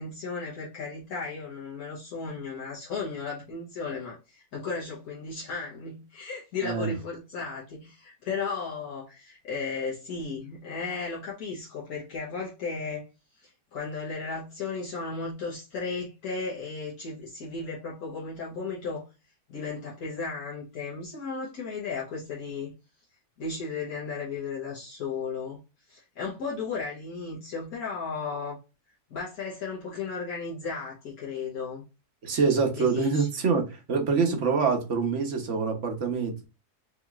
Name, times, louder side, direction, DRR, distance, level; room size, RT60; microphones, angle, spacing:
voice 1, 0.0-13.1 13.3-19.1 19.5-22.7 23.4-25.6 25.9-28.6 29.1-31.8 32.7-33.3, left 4 dB, 70° left, 1.5 m, -35 dB
voice 2, 6.6-6.9 32.2-36.4, right 5 dB, 55° right, 1.2 m, -25 dB
5.1 x 2.9 x 2.4 m
omnidirectional pair, 1.6 m